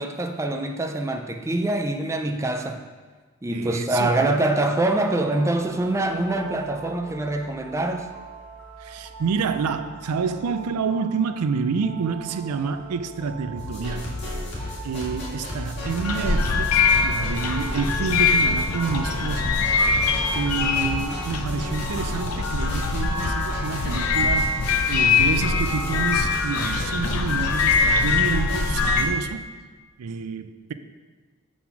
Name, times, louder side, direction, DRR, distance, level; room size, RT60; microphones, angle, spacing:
voice 1, 0.0-2.9 3.4-8.1, right 2 dB, 15° right, 0.4 m, -25 dB
voice 2, 3.5-4.3 8.8-14.1 14.8-19.6 20.3-29.4 30.0-30.7, right 5 dB, 85° right, 0.4 m, -28 dB
sound 1, 4.5-22.8, right 4 dB, 5° left, 1.1 m, -43 dB
sound 2, 13.6-29.0, left 1 dB, 50° left, 2.0 m, -33 dB
sound 3, 15.8-29.1, left 4 dB, 70° left, 0.6 m, -23 dB
7.6 x 4.1 x 5.7 m
head